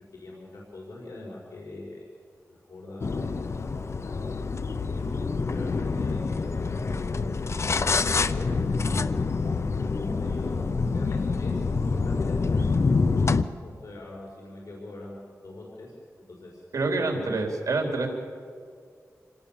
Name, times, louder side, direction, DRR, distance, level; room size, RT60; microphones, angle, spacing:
voice 1, 0.2-2.0 2.5-4.4 4.8-9.0 9.7-12.7 13.6-15.2 15.4-17.4, left 2 dB, 80° left, -3 dB, 4.7 m, -43 dB
sound 1, 3.0-13.4, left 4 dB, 50° left, 0.7 m, -26 dB
voice 2, 16.7-18.1, right 3 dB, 75° right, 2 dB, 3.9 m, -27 dB
26.5 x 18.5 x 7.2 m, 2.2 s
wide cardioid pair, 110°, 6 cm